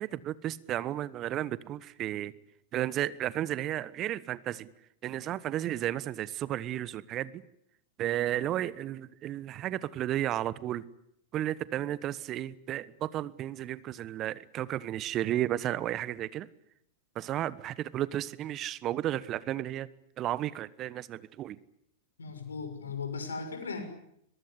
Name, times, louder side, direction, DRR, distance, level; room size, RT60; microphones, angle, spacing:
voice 1, 0.0-2.3 2.7-4.7 5.0-7.4 8.0-10.8 11.3-16.5 17.1-19.9 20.2-21.6, right 13 dB, 35° right, 19 dB, 1.2 m, -33 dB
voice 2, 22.2-23.8, left 5 dB, 80° left, 7 dB, 6.5 m, -37 dB
22.5 x 22.0 x 9.9 m, 0.74 s
figure-of-eight pair, 95°, 0 cm